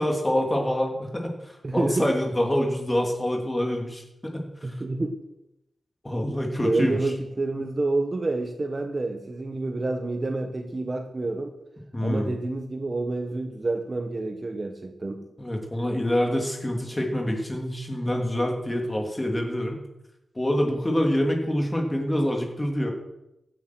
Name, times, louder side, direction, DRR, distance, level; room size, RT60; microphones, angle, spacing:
voice 1, 0.0-4.7 6.0-7.0 11.9-12.3 15.4-19.8 20.3-22.9, left 1 dB, 20° left, 1 dB, 3.4 m, -26 dB
voice 2, 1.6-2.1 4.6-5.2 6.6-11.5 12.0-15.2, right 2 dB, 35° right, 4 dB, 1.4 m, -28 dB
16.0 x 9.6 x 6.4 m, 0.89 s
wide cardioid pair, 85°, 0 cm